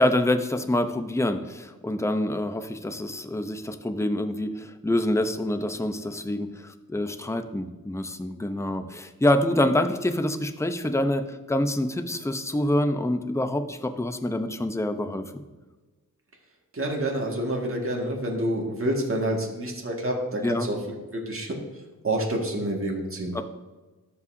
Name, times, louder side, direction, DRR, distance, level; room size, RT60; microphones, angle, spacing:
voice 1, 0.0-15.4 20.4-20.7 23.3-23.4, left 1 dB, 10° left, 8 dB, 0.7 m, -26 dB
voice 2, 16.7-20.8 21.1-21.5 22.0-23.4, right 1 dB, 40° right, -1 dB, 1.9 m, -28 dB
13.5 x 5.5 x 2.7 m, 1.2 s
cardioid pair, 65°, 35 cm